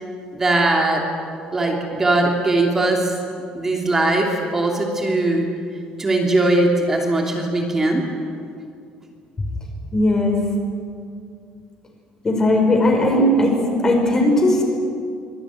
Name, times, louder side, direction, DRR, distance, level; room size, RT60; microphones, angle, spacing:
voice 1, 0.3-1.1 1.5-3.2 3.5-5.5 6.0-8.1, right 2 dB, 15° right, 1 dB, 3.0 m, -20 dB
voice 2, 9.9-10.4 12.2-13.6 13.8-14.6, left 1 dB, 20° left, 2 dB, 5.3 m, -17 dB
25.0 x 21.5 x 9.5 m, 2.4 s
cardioid pair, 160°, 3 cm